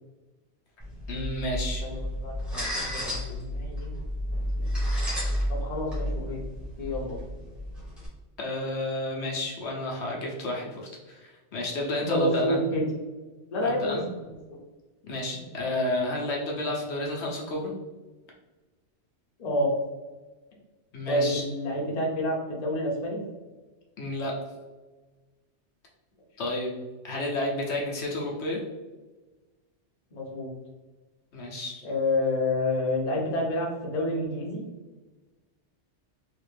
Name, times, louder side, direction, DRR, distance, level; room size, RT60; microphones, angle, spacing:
sound 1, 0.8-8.1, equal, ahead, 1.0 m, -32 dB
voice 1, 1.1-1.9 8.4-12.6 13.6-14.0 15.1-17.7 20.9-21.4 24.0-24.3 26.4-26.7 27.0-28.6 31.3-31.8, left 1 dB, 70° left, -2 dB, 1.0 m, -31 dB
voice 2, 1.8-2.6 2.9-3.9 4.3-5.1 5.5-6.4 6.8-7.2 12.0-12.8 13.5-14.0 19.4-19.7 21.1-23.2 30.1-30.5 31.8-34.6, left 1 dB, 40° left, -2 dB, 0.8 m, -29 dB
3.4 x 2.5 x 3.3 m, 1.2 s
omnidirectional pair, 1.2 m